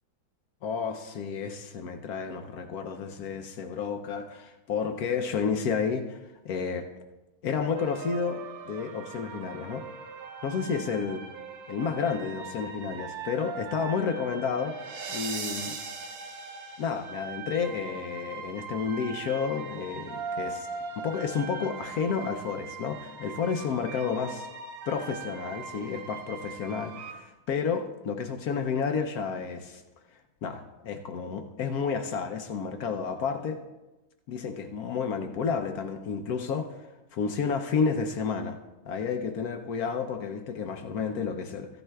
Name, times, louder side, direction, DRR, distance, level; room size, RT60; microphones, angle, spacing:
voice 1, 0.6-6.9 7.4-9.9 10.4-11.2 11.7-14.8 15.1-15.8 16.8-20.7 21.0-24.5 24.9-29.8 30.4-33.6 34.3-38.6 38.8-41.7, left 6 dB, 75° left, 6 dB, 0.8 m, -31 dB
sound 1, 7.7-27.1, right 5 dB, 70° right, 1.7 m, -40 dB
14.5 x 10.5 x 2.3 m, 1.1 s
omnidirectional pair, 2.2 m